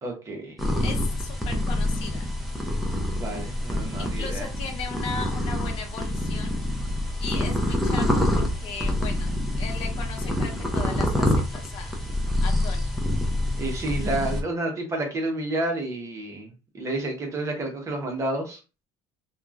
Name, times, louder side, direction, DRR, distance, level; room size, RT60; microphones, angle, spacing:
voice 1, 0.0-0.6 3.1-4.5 13.6-18.6, right 2 dB, 25° right, 3 dB, 0.9 m, -30 dB
sound 1, 0.6-14.4, left 1 dB, ahead, 0.6 m, -26 dB
voice 2, 0.8-2.3 4.0-6.5 7.2-11.9 12.4-12.9, left 5 dB, 60° left, 3 dB, 0.8 m, -37 dB
2.9 x 2.3 x 2.4 m, 0.30 s
cardioid pair, 130°, 11 cm